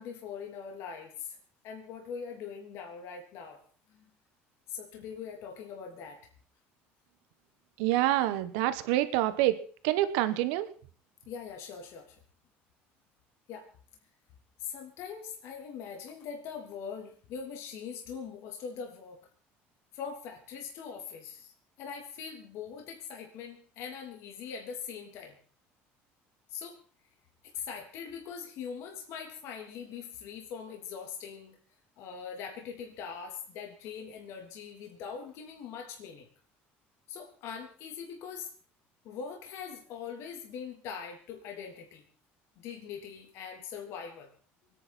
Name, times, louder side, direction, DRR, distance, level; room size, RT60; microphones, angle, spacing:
voice 1, 0.0-1.4 1.6-3.6 3.9-4.0 4.7-6.2 10.2-10.3 11.2-12.2 13.5-13.7 14.6-19.2 19.9-25.4 26.5-26.8 27.4-31.6 32.0-36.3 37.1-38.5 39.0-42.1 42.6-44.3, left 6 dB, 70° left, 2 dB, 3.1 m, -42 dB
voice 2, 7.8-9.6 9.8-10.7, right 14 dB, 90° right, 12 dB, 1.2 m, -27 dB
24.5 x 9.9 x 4.3 m, 0.41 s
cardioid pair, 120°, 5 cm